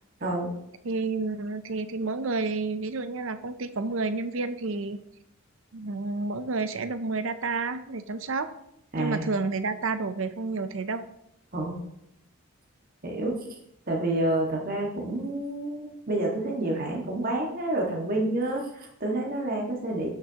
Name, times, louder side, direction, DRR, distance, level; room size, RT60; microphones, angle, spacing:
voice 1, 0.2-0.5 8.9-9.3 11.5-11.8 13.0-13.4 13.9-20.1, right 1 dB, 40° right, -1 dB, 1.8 m, -28 dB
voice 2, 0.8-5.0 5.7-8.5 9.0-11.1, right 3 dB, 65° right, 11 dB, 0.7 m, -30 dB
12.0 x 6.7 x 3.0 m, 0.76 s
head